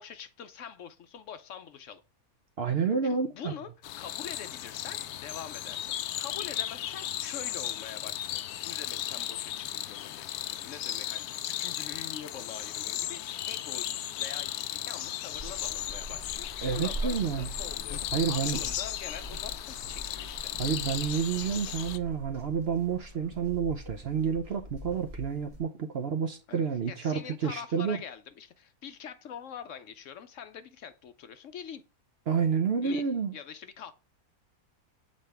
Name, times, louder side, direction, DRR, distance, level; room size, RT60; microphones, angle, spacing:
voice 1, 0.0-2.0 3.0-3.7 4.0-20.5 26.5-31.8 32.8-33.0 33.3-33.9, left 8 dB, 65° left, 0.9 m, -44 dB
voice 2, 2.6-3.5 16.6-17.5 18.1-18.6 20.6-28.0 32.3-33.4, right 6 dB, 55° right, 0.8 m, -29 dB
sound 1, 3.8-22.0, left 12 dB, 90° left, 1.1 m, -36 dB
sound 2, 15.3-25.6, right 1 dB, 30° right, 0.9 m, -42 dB
7.5 x 4.3 x 3.3 m
omnidirectional pair, 1.5 m